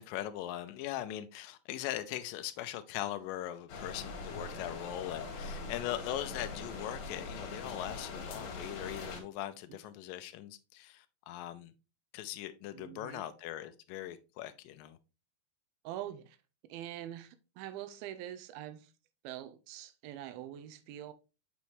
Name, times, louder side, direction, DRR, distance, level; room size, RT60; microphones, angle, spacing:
voice 1, 0.0-11.7 12.1-15.0, left 13 dB, 80° left, 2.0 m, -40 dB
sound 1, 3.7-9.2, left 3 dB, 60° left, 2.6 m, -42 dB
voice 2, 12.7-13.2 15.8-16.4 16.6-18.9 19.2-21.1, right 12 dB, 80° right, 2.4 m, -44 dB
7.0 x 5.3 x 3.0 m
omnidirectional pair, 4.5 m